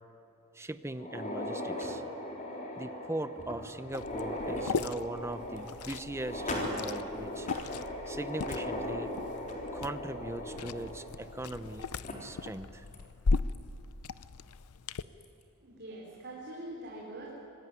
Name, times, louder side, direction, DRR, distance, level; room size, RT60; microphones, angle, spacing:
voice 1, 0.5-2.0 2.8-7.5 8.1-9.1 9.7-11.9 12.2-12.8, right 1 dB, 10° right, 11 dB, 0.9 m, -39 dB
sound 1, 0.9-11.7 12.0-12.1 12.9-13.0 13.5-13.6 15.0-15.2, left 1 dB, 35° left, 4.0 m, -38 dB
Liquid, 3.9-15.0, left 4 dB, 90° left, 0.7 m, -38 dB
voice 2, 15.6-17.3, right 1 dB, 50° right, -4 dB, 4.3 m, -43 dB
26.0 x 20.0 x 9.7 m, 2.7 s
head